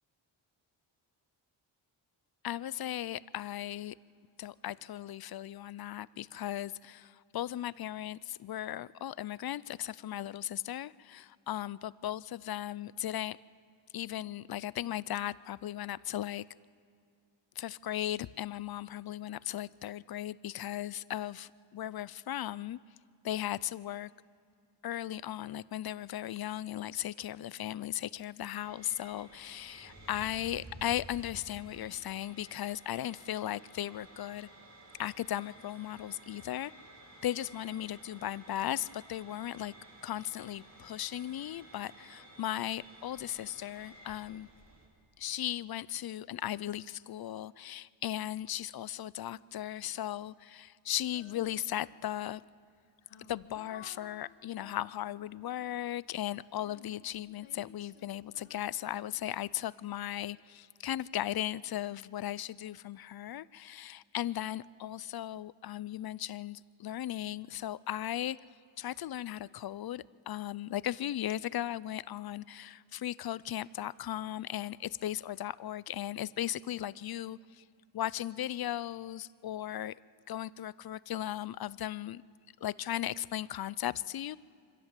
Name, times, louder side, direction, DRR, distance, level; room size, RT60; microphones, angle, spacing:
voice 1, 2.4-4.0 4.4-13.4 13.9-16.5 17.6-22.8 23.2-24.1 24.8-34.5 35.0-36.7 37.2-39.7 40.0-44.5 45.2-52.4 53.3-68.4 68.8-77.6 77.9-79.9 80.3-82.2 82.6-84.4, left 12 dB, 50° left, 20 dB, 0.5 m, -37 dB
sound 1, 28.6-44.9, right 1 dB, 35° right, 4.5 m, -54 dB
Female singing, 51.0-52.1 52.7-56.0 56.5-59.7, left 7 dB, 75° left, 1.5 m, -57 dB
25.0 x 16.0 x 7.4 m, 2.3 s
cardioid pair, 105°, 48 cm